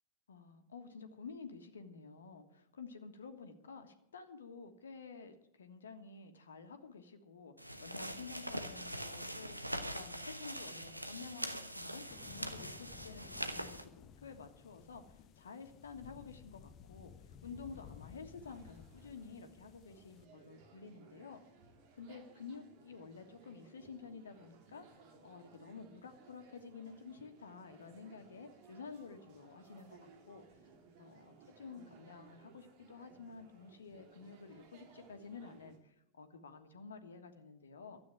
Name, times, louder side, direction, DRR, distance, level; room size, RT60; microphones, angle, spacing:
voice 1, 0.3-21.4 22.0-24.9 25.2-30.4 31.0-38.0, left 5 dB, 70° left, 7 dB, 1.5 m, -51 dB
sound 1, 7.6-13.8, equal, 90° right, 1.1 m, -43 dB
sound 2, 12.1-20.2, left 8 dB, 35° left, 0.8 m, -56 dB
sound 3, 17.4-35.8, right 5 dB, 45° right, 2.6 m, -62 dB
13.0 x 8.6 x 9.0 m, 0.80 s
figure-of-eight pair, 90°, 0 cm